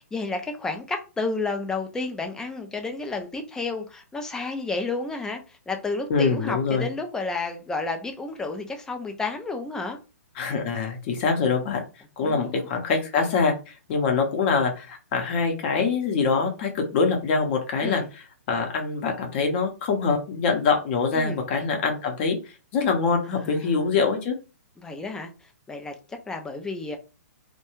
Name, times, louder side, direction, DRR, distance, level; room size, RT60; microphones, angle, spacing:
voice 1, 0.1-10.0 12.2-12.7 17.8-18.1 21.1-21.4 23.3-23.8 24.8-25.3 25.7-27.0, left 3 dB, 5° left, 0.3 m, -31 dB
voice 2, 6.1-6.9 10.4-11.8 12.2-18.0 18.5-22.4 22.7-24.3, left 4 dB, 40° left, 0.6 m, -24 dB
2.2 x 2.2 x 3.0 m
hypercardioid pair, 135°, 9 cm